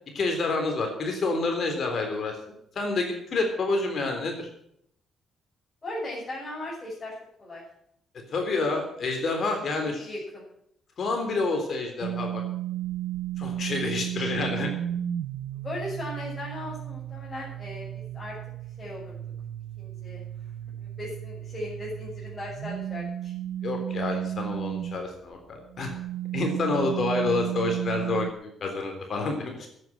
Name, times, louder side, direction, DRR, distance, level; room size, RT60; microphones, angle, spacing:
voice 1, 0.1-2.4 2.8-4.5 8.3-10.1 11.0-12.4 13.4-14.7 23.6-25.9 26.3-29.7, left 3 dB, 55° left, 3 dB, 3.6 m, -28 dB
voice 2, 5.8-7.1 7.4-7.6 9.8-10.5 15.6-18.3 18.8-19.2 19.8-20.2 20.8-23.3, left 1 dB, 30° left, -7 dB, 7.0 m, -37 dB
sound 1, 12.0-25.1 25.6-28.3, right 12 dB, 80° right, 0.7 m, -34 dB
10.5 x 9.1 x 9.3 m, 0.72 s
cardioid pair, 90°, 0 cm